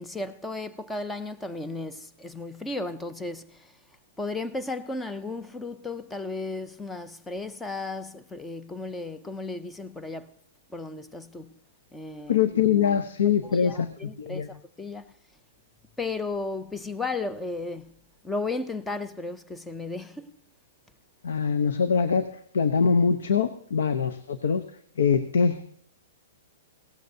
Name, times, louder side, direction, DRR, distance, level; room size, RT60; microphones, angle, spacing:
voice 1, 0.0-3.8 4.2-10.3 10.7-11.5 11.9-12.4 12.9-15.1 16.0-18.0 18.2-20.3, left 3 dB, 5° left, 0.4 m, -34 dB
voice 2, 12.3-13.9 14.2-14.5 21.2-22.3 22.5-24.6 25.0-25.6, left 6 dB, 85° left, 0.7 m, -23 dB
17.0 x 14.5 x 2.7 m
hypercardioid pair, 160°, 0 cm